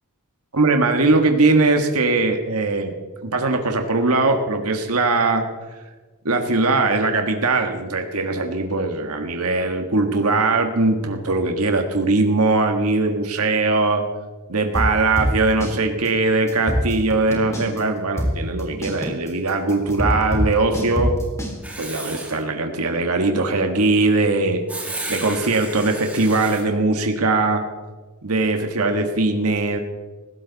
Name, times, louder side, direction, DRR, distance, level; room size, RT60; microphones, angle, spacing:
voice 1, 0.5-2.9 3.2-5.5 6.2-14.0 14.5-21.1 21.8-24.6 25.1-27.6 28.2-29.8, right 3 dB, 85° right, 5 dB, 1.6 m, -20 dB
sound 1, 14.7-15.8 16.0-16.1 16.5-17.8 18.2-21.5, equal, 15° left, 3.6 m, -23 dB
Writing, 21.6-22.4 24.7-26.6, right 2 dB, 5° right, 3.0 m, -33 dB
19.5 x 16.5 x 4.1 m, 1.3 s
head